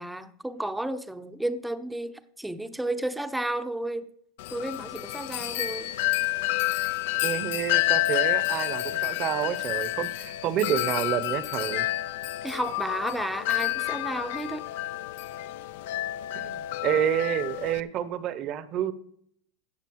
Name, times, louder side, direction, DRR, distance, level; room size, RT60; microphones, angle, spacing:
voice 1, 0.0-4.1 4.5-6.0 12.4-14.6, right 1 dB, 5° right, 10 dB, 0.7 m, -32 dB
Wind chime, 4.4-17.8, left 17 dB, 70° left, 0.5 m, -29 dB
voice 2, 7.2-11.9 16.3-18.9, right 10 dB, 40° right, 15 dB, 0.8 m, -29 dB
15.5 x 6.7 x 4.7 m, 0.69 s
supercardioid pair, 130°, 0 cm